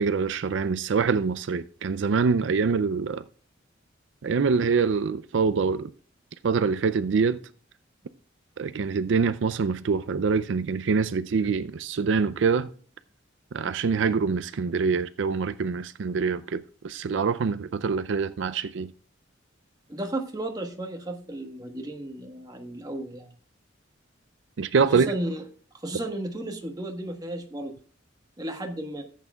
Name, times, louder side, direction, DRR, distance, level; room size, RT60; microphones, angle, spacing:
voice 1, 0.0-3.2 4.2-5.9 6.4-7.4 8.6-12.7 13.5-18.9 24.6-25.1, right 5 dB, 70° right, 0.4 m, -25 dB
voice 2, 19.9-23.3 24.9-25.4 25.7-27.7 28.4-29.0, right 1 dB, 20° right, 1.3 m, -34 dB
14.5 x 8.4 x 2.3 m
head